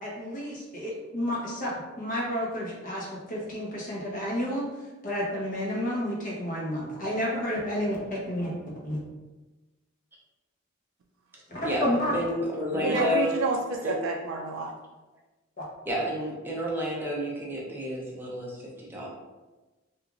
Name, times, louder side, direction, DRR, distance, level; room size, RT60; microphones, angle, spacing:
voice 1, 0.0-4.7 5.0-8.5 8.8-9.0 11.5-12.2 12.7-13.0 15.6-15.7, equal, 40° left, -4 dB, 0.8 m, -31 dB
voice 2, 12.1-13.4 13.8-13.9 15.9-19.1, equal, 10° right, -4 dB, 0.6 m, -30 dB
voice 3, 12.8-14.7, right 3 dB, 75° right, 2 dB, 0.3 m, -29 dB
2.9 x 2.4 x 2.4 m, 1.2 s
head